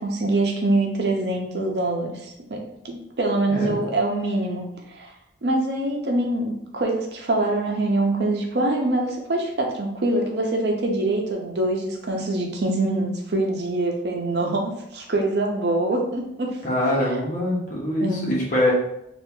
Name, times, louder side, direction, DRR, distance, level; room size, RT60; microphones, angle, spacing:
voice 1, 0.0-4.6 4.9-5.1 5.4-16.6 17.0-17.2 18.0-18.3, right 2 dB, 65° right, 1 dB, 0.7 m, -24 dB
voice 2, 3.5-3.8 16.6-18.7, left 1 dB, 50° left, -4 dB, 1.0 m, -23 dB
2.8 x 2.5 x 3.6 m, 0.79 s
head